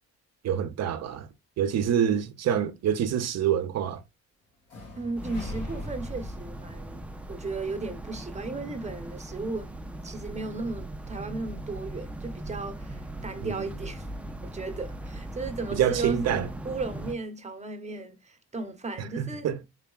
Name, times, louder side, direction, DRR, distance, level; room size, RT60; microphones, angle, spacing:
voice 1, 0.4-1.3 1.6-4.0 15.8-16.5 19.2-19.6, right 9 dB, 60° right, 0.5 m, -26 dB
sound 1, 4.7-8.6, left 1 dB, 85° left, 2.3 m, -41 dB
voice 2, 4.9-7.0 7.3-9.7 10.0-14.1 14.4-19.7, right 3 dB, 25° right, 0.8 m, -35 dB
sound 2, 5.2-17.1, right 1 dB, 5° right, 0.3 m, -39 dB
3.9 x 3.3 x 2.3 m
cardioid pair, 90°, 30 cm